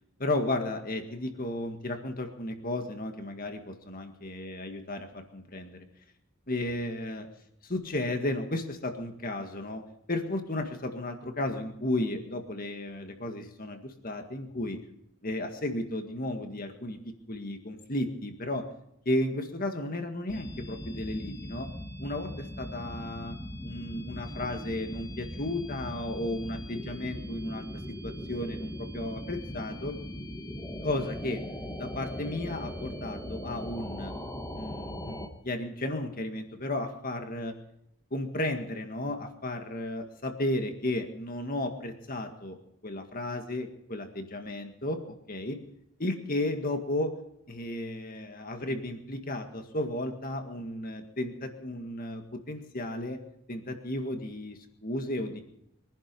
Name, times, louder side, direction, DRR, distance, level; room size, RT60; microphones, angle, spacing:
voice 1, 0.2-5.9 6.5-7.3 7.6-9.8 10.1-14.8 15.2-18.6 19.1-21.7 22.0-23.4 23.6-30.0 30.8-31.4 31.8-34.1 34.5-37.5 38.1-42.6 42.8-45.6 46.0-47.1 47.5-53.2 53.5-55.4, left 1 dB, 40° left, 6 dB, 1.9 m, -34 dB
sound 1, 20.3-35.3, equal, 15° left, 1.4 m, -39 dB
23.0 x 11.0 x 5.4 m, 0.79 s
head